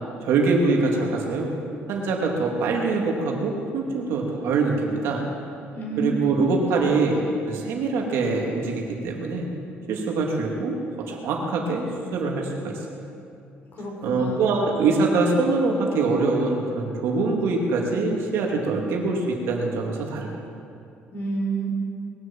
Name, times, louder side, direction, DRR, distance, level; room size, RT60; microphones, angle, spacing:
voice 1, 0.2-1.5 1.9-5.2 6.0-7.2 7.5-9.5 9.9-10.8 11.1-11.9 12.1-12.8 14.0-20.3, right 3 dB, 80° right, 0 dB, 2.8 m, -24 dB
voice 2, 5.7-6.2 6.7-7.0 13.7-14.4 21.1-21.7, right 2 dB, 50° left, 0 dB, 4.0 m, -29 dB
21.0 x 7.9 x 7.6 m, 2.5 s
cardioid pair, 120°, 4 cm